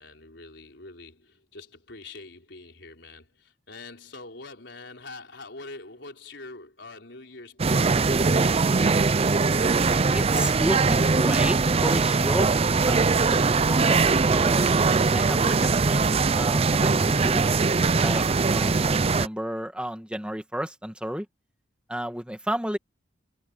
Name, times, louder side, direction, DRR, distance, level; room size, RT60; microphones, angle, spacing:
voice 1, 0.0-9.0, left 3 dB, 70° left, 4.7 m, -44 dB
sound 1, 7.6-19.3, right 4 dB, 30° right, 0.5 m, -21 dB
voice 2, 10.1-14.7 15.1-16.0 16.3-17.4 17.9-21.3 21.9-22.8, equal, 5° right, 2.1 m, -32 dB
head